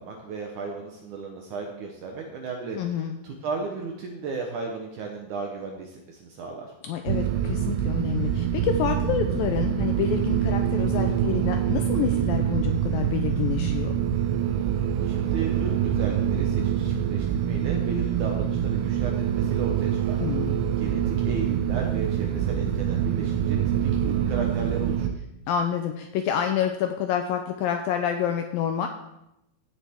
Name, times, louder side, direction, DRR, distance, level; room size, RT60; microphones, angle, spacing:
voice 1, 0.0-2.8 3.2-6.7 15.0-20.2 20.8-25.2, right 4 dB, 70° right, 1 dB, 2.0 m, -35 dB
voice 2, 2.8-3.2 6.8-13.9 20.2-20.6 25.5-28.9, left 9 dB, 80° left, 5 dB, 2.1 m, -28 dB
sound 1, 7.1-25.1, right 9 dB, 90° right, 2.7 m, -25 dB
16.0 x 7.1 x 3.6 m, 0.85 s
omnidirectional pair, 4.7 m